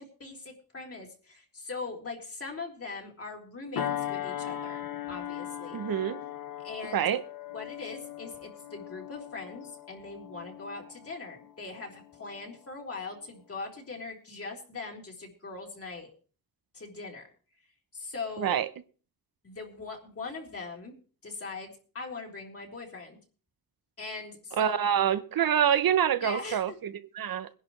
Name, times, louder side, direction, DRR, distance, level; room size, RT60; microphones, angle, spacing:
voice 1, 0.0-5.8 6.6-7.0 7.5-16.1 16.7-17.3 17.9-18.6 19.4-20.9 21.2-23.2 24.0-25.0 26.2-26.6, left 3 dB, 40° left, 3.8 m, -41 dB
sound 1, 3.8-12.6 13.1-13.3, left 11 dB, 70° left, 1.2 m, -39 dB
voice 2, 5.7-6.2 6.9-7.2 18.4-18.7 24.5-27.5, right 9 dB, 75° right, 0.9 m, -26 dB
22.0 x 11.0 x 3.3 m
wide cardioid pair, 135°, 36 cm